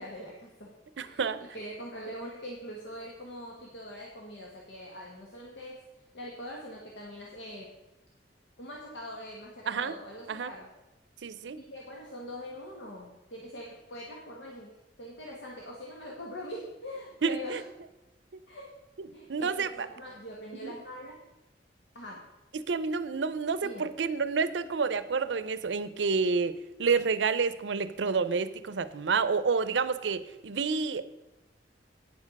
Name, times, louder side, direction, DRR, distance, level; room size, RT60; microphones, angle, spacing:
voice 1, 0.0-5.8 6.1-7.8 8.6-10.7 11.6-17.6 18.5-18.7 19.1-21.2 21.9-22.3 23.6-23.9, equal, 80° left, -2 dB, 1.5 m, -43 dB
voice 2, 1.0-1.4 9.7-9.9 10.3-10.5 11.2-11.6 17.2-17.6 19.0-19.9 20.5-20.7 22.5-31.0, right 5 dB, 85° right, 14 dB, 0.6 m, -29 dB
9.3 x 7.4 x 5.3 m, 1.0 s
head